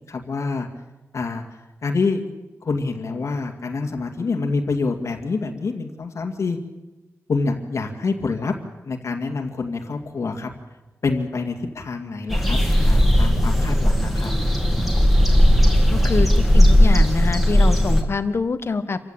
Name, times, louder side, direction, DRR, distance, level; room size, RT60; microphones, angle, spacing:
voice 1, 0.1-0.7 1.1-1.4 1.8-2.2 2.6-6.6 7.3-8.6 8.8-10.5 11.0-14.3 16.0-16.2, left 4 dB, 70° left, 3 dB, 2.2 m, -26 dB
sound 1, 12.3-18.0, equal, 5° right, 3.2 m, -16 dB
voice 2, 15.9-19.0, left 4 dB, 50° left, 11 dB, 1.3 m, -25 dB
27.0 x 16.0 x 8.8 m, 1.1 s
wide cardioid pair, 115°, 5 cm